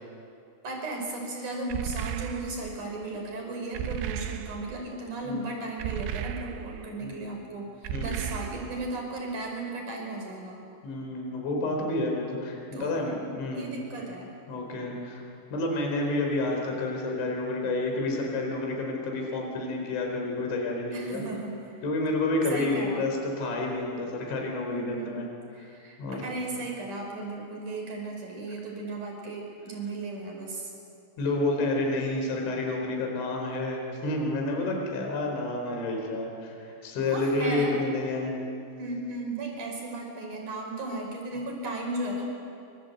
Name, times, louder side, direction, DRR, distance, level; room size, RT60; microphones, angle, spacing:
voice 1, 0.6-10.6 12.7-12.9 13.5-14.3 20.9-21.8 22.5-23.0 24.6-25.3 25.5-30.7 37.1-37.7 38.8-42.2, right 2 dB, 40° right, 1 dB, 6.5 m, -35 dB
sound 1, 1.7-2.8 3.7-4.8 5.8-6.9 7.8-8.9, right 10 dB, 75° right, 3.2 m, -35 dB
voice 2, 7.0-7.3 7.9-8.2 10.8-14.0 14.5-15.2 15.5-21.2 21.8-25.3 26.0-26.2 31.2-38.3, left 2 dB, 65° left, 1 dB, 6.5 m, -29 dB
28.5 x 24.5 x 8.2 m, 2.6 s
omnidirectional pair, 5.8 m